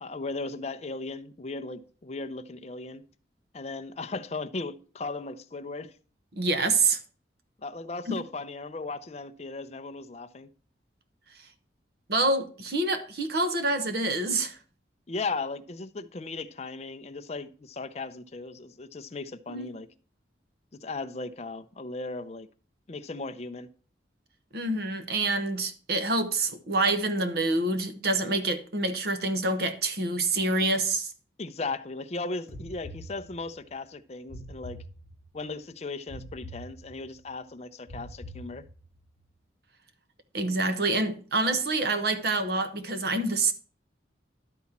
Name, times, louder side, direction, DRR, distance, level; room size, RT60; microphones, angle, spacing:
voice 1, 0.0-3.1 3.5-5.9 7.6-10.5 15.1-19.9 20.8-22.5 22.9-23.7 31.4-34.8 35.3-38.6, left 3 dB, 35° left, 0.5 m, -37 dB
voice 2, 6.3-7.0 8.1-8.2 12.1-14.6 19.5-19.7 24.5-31.1 40.3-43.5, right 2 dB, 55° right, 1.0 m, -27 dB
sound 1, 32.5-33.7 34.3-35.5 36.1-37.2 37.9-39.0, equal, 15° right, 2.0 m, -44 dB
11.5 x 4.2 x 5.9 m
head